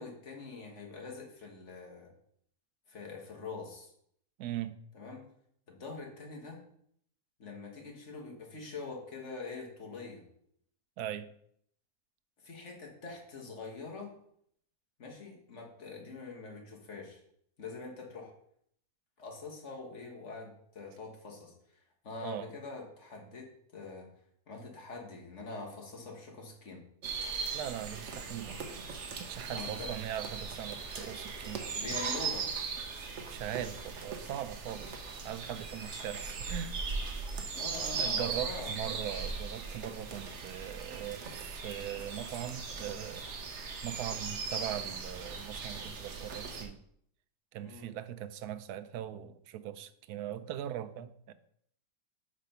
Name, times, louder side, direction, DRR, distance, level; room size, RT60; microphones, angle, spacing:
voice 1, 0.0-2.1 2.9-3.9 4.9-5.2 5.7-6.6 7.4-10.2 12.4-14.1 15.0-17.2 17.6-18.3 19.2-21.5 22.0-24.1 24.5-26.8 29.5-29.9 31.8-32.5 37.5-38.7 47.6-47.9, left 3 dB, 50° left, 0 dB, 1.7 m, -44 dB
voice 2, 4.4-4.8 11.0-11.3 22.2-22.5 27.5-28.7 29.2-31.7 33.3-35.0 35.2-36.8 37.9-46.8 47.5-51.3, right 11 dB, 80° right, 12 dB, 1.1 m, -40 dB
sound 1, 27.0-46.6, right 5 dB, 55° right, 1.1 m, -39 dB
5.1 x 5.0 x 5.6 m, 0.68 s
omnidirectional pair, 1.6 m